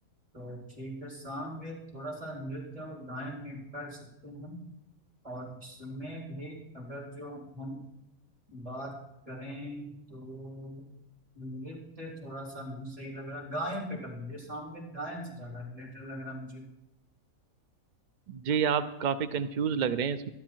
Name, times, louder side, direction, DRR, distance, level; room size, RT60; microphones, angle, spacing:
voice 1, 0.3-4.7 5.2-7.8 8.5-9.0 9.2-10.8 11.3-16.6, equal, 25° right, -4 dB, 4.1 m, -40 dB
voice 2, 18.3-20.3, right 7 dB, 75° right, 11 dB, 0.4 m, -29 dB
12.5 x 11.5 x 4.5 m, 0.87 s
omnidirectional pair, 1.5 m